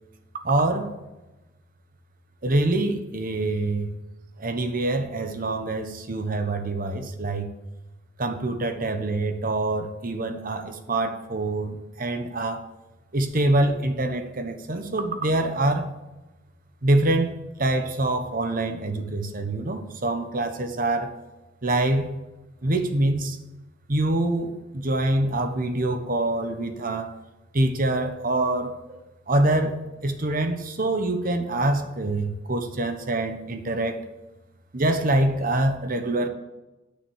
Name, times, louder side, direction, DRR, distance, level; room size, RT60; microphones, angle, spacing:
voice 1, 0.4-0.9 2.4-4.0 4.4-7.5 8.2-12.6 13.1-15.9 16.8-21.2 21.6-22.1 22.6-23.4 23.9-27.1 27.5-29.8 30.0-34.0 34.7-36.3, right 2 dB, 45° right, 1.1 m, -25 dB
10.0 x 6.2 x 7.1 m
head